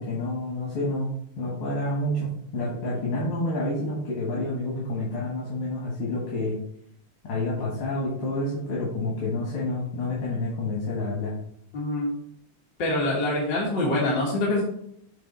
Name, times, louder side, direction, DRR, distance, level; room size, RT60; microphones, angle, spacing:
voice 1, 0.0-6.6 7.2-11.3, left 2 dB, 85° left, -5 dB, 2.5 m, -29 dB
voice 2, 11.7-12.1 12.8-14.6, left 1 dB, 60° left, -4 dB, 1.9 m, -25 dB
6.7 x 3.8 x 5.3 m, 0.71 s
omnidirectional pair, 2.3 m